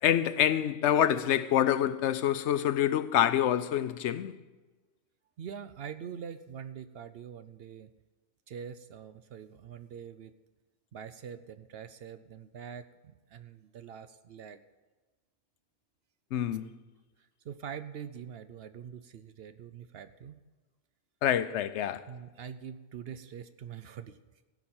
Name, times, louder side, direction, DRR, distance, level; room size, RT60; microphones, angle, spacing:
voice 1, 0.0-4.4 16.3-16.7 21.2-22.1, left 10 dB, 85° left, 0.9 m, -26 dB
voice 2, 5.4-7.9 8.5-10.3 10.9-14.6 17.2-20.3 22.1-24.2, right 8 dB, 65° right, 0.8 m, -44 dB
16.0 x 6.0 x 8.7 m
omnidirectional pair, 1.1 m